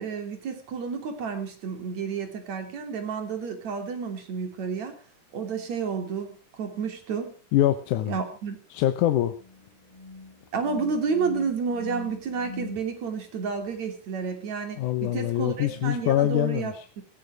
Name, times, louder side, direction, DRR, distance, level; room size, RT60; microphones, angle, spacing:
voice 1, 0.0-5.0 5.3-7.3 8.1-8.6 10.5-17.0, right 5 dB, 65° right, 6 dB, 4.2 m, -31 dB
voice 2, 7.5-8.1 8.7-9.3 14.8-16.9, left 13 dB, 85° left, 10 dB, 2.5 m, -24 dB
sound 1, 9.4-12.8 15.0-16.4, left 3 dB, 15° left, 1.1 m, -43 dB
17.0 x 16.0 x 4.8 m, 0.37 s
omnidirectional pair, 3.5 m